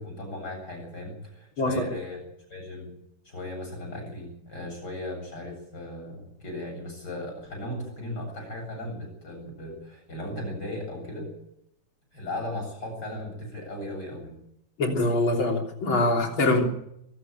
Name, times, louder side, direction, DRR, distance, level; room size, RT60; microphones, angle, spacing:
voice 1, 0.0-3.0 3.3-11.3 12.1-14.4, left 1 dB, 55° left, 2 dB, 8.6 m, -37 dB
voice 2, 14.8-16.7, left 2 dB, 85° left, 2 dB, 4.1 m, -24 dB
22.0 x 13.0 x 9.2 m, 0.77 s
omnidirectional pair, 2.1 m